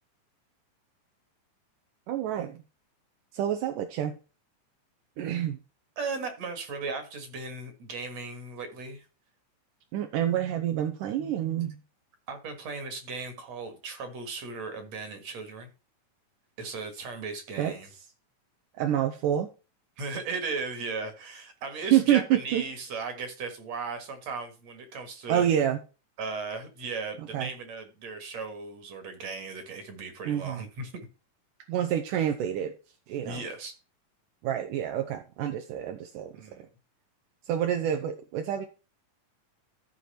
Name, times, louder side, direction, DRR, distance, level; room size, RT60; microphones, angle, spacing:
voice 1, 2.1-2.6 3.3-4.1 5.2-5.6 9.9-11.8 17.6-17.8 18.8-19.5 21.9-22.6 25.3-25.8 27.3-27.5 30.3-30.6 31.7-32.7 33.1-33.5 34.4-36.7 37.5-38.7, right 10 dB, 80° right, 5 dB, 2.4 m, -27 dB
voice 2, 6.0-9.0 12.3-15.7 16.6-17.9 20.0-25.5 26.2-30.9 33.2-33.7 36.3-36.6, right 4 dB, 55° right, 7 dB, 2.7 m, -37 dB
14.0 x 4.7 x 4.3 m, 0.32 s
omnidirectional pair, 3.9 m